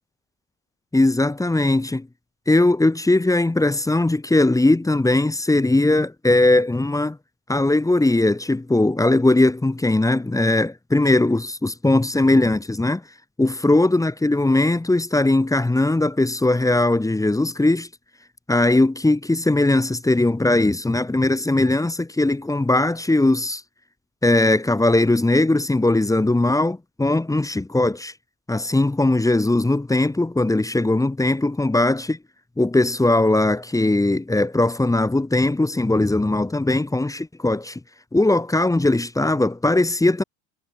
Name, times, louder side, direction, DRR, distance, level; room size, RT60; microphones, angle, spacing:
voice 1, 0.9-2.1 2.5-7.2 7.5-13.0 13.4-17.9 18.5-23.6 24.2-28.1 28.5-32.2 32.6-37.8 38.1-40.2, left 2 dB, 10° left, 1.8 m, -19 dB
hypercardioid pair, 85°, 40 cm